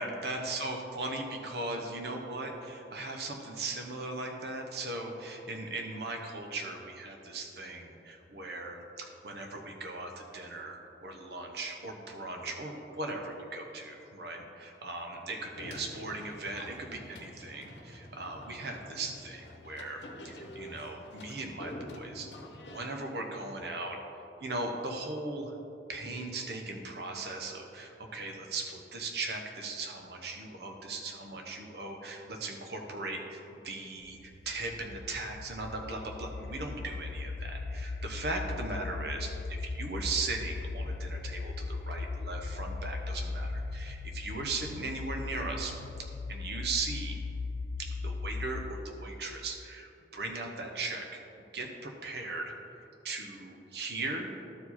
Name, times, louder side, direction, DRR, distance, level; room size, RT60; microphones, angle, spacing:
voice 1, 0.0-22.3 22.7-24.0 24.4-25.5 25.9-45.8 46.3-47.2 47.8-52.5 53.0-54.3, right 2 dB, 70° right, 3 dB, 1.0 m, -38 dB
sound 1, 15.5-22.9, left 1 dB, 80° left, 0.9 m, -47 dB
sound 2, 34.0-48.9, left 3 dB, 60° left, 0.3 m, -38 dB
12.0 x 4.7 x 4.2 m, 2.8 s
head